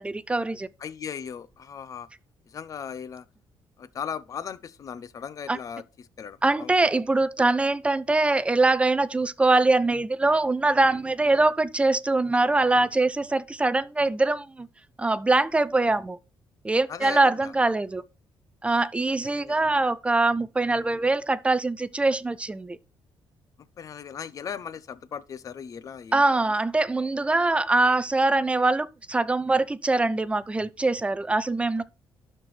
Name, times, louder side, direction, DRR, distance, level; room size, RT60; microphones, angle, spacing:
voice 1, 0.0-0.7 5.5-5.6 6.4-14.7 15.0-16.2 16.6-18.0 18.6-22.8 26.1-31.8, right 2 dB, 15° right, 0.4 m, -23 dB
voice 2, 0.8-2.1 2.5-3.2 3.8-6.7 16.9-17.5 19.2-19.6 23.8-26.2, left 7 dB, 40° left, 0.6 m, -38 dB
12.0 x 4.4 x 3.2 m
cardioid pair, 145°, 9 cm